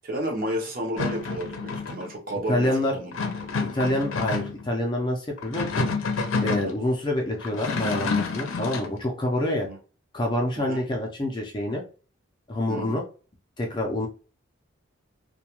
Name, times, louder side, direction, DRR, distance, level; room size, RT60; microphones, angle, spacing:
voice 1, 0.0-3.5 6.6-6.7 9.6-9.8 10.6-10.8 12.7-13.0, right 1 dB, 45° right, 0 dB, 0.7 m, -32 dB
sound 1, 1.0-2.1 3.1-4.7 5.4-6.7 7.4-8.9, left 4 dB, 75° left, 0.5 m, -28 dB
voice 2, 2.5-3.0 3.7-5.8 6.2-9.7 10.1-11.8 12.5-13.0 13.6-14.1, left 1 dB, 20° left, 0 dB, 0.4 m, -27 dB
2.2 x 2.1 x 2.9 m, 0.36 s
head